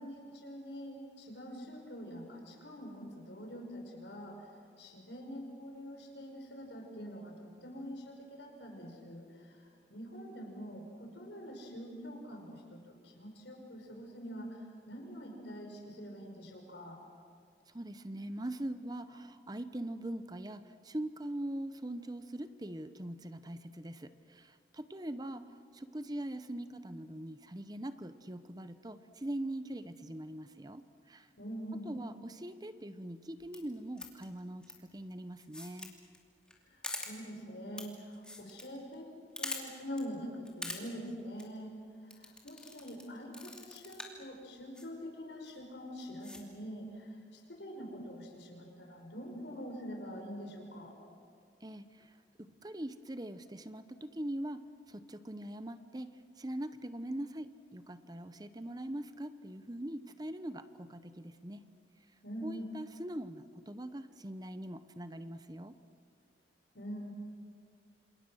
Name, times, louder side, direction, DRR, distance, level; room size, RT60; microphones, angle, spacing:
voice 1, 0.0-4.4 4.8-17.0 31.4-32.0 36.6-39.1 39.4-41.7 42.0-50.9 62.2-62.6 66.7-67.1, equal, 85° left, 2 dB, 5.6 m, -45 dB
voice 2, 17.7-25.4 25.7-31.3 31.9-35.9 51.6-52.1 52.4-61.7 62.4-65.8, right 1 dB, 20° right, 11 dB, 0.8 m, -42 dB
sound 1, 33.4-33.6 34.0-34.2 34.6-34.7 35.4-35.9 36.1-36.2 36.5-36.6 36.8-37.1 37.8-37.9 38.1-38.6 38.9-39.0 39.4-39.6 40.0-40.1 40.5-40.8 41.2-41.4 42.1-43.0 43.3-44.2 44.8-44.9 45.4-45.6 46.0-46.4, left 2 dB, 5° left, 2.8 m, -42 dB
28.5 x 27.5 x 6.4 m, 2.2 s
head